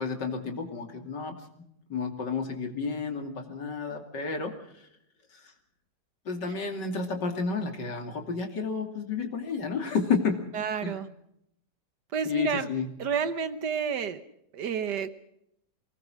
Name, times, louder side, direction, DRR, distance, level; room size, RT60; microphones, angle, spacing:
voice 1, 0.0-1.3 1.9-4.5 5.3-5.4 6.2-10.4 10.8-11.0 12.2-12.9, left 5 dB, 85° left, 4 dB, 3.3 m, -31 dB
voice 2, 10.5-11.1 12.1-12.7 13.0-14.2 14.5-15.1, right 7 dB, 75° right, 12 dB, 1.7 m, -30 dB
24.0 x 19.0 x 6.4 m, 0.77 s
omnidirectional pair, 1.8 m